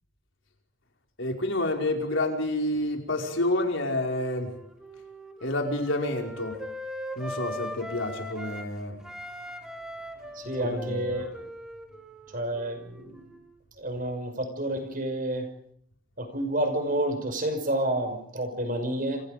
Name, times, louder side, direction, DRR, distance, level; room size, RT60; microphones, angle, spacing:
voice 1, 1.2-4.5 5.4-6.6 7.2-9.0 10.6-11.1, left 1 dB, 60° left, 3 dB, 5.3 m, -29 dB
Wind instrument woodwind instrument, 4.2-8.7 9.0-13.5, equal, 5° right, 2.9 m, -40 dB
voice 2, 10.3-11.3 12.3-13.3 13.8-15.5 16.2-19.2, right 1 dB, 40° right, 7 dB, 5.8 m, -29 dB
28.5 x 28.5 x 5.2 m, 0.73 s
head